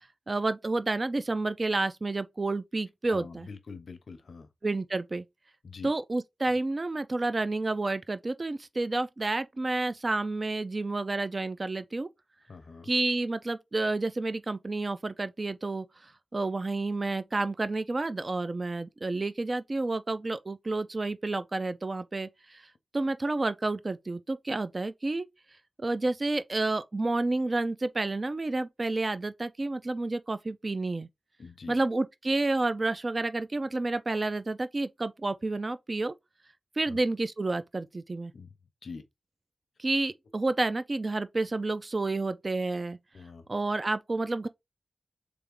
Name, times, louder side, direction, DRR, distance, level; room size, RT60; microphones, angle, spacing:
voice 1, 0.3-3.5 4.6-5.2 5.8-12.1 12.8-15.9 16.3-22.6 22.9-25.3 25.8-31.1 31.7-36.1 36.8-38.3 39.8-43.0 43.5-44.5, right 2 dB, 45° right, 0.4 m, -30 dB
voice 2, 3.1-4.5 5.6-5.9 12.5-12.9 31.4-31.8 36.9-37.0 38.3-38.5 38.8-39.0 43.1-43.4, left 4 dB, 80° left, 0.7 m, -44 dB
3.4 x 3.4 x 3.6 m
wide cardioid pair, 70°, 0 cm